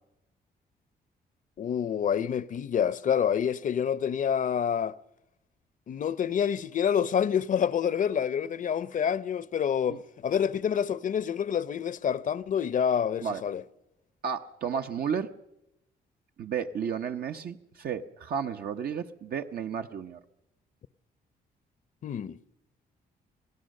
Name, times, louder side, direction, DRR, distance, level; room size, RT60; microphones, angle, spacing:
voice 1, 1.6-5.0 5.9-13.6 22.0-22.4, left 8 dB, 50° left, 0.7 m, -27 dB
voice 2, 14.2-15.3 16.4-20.2, right 7 dB, 65° right, 0.9 m, -32 dB
26.5 x 17.5 x 6.5 m
cardioid pair, 95°, 17 cm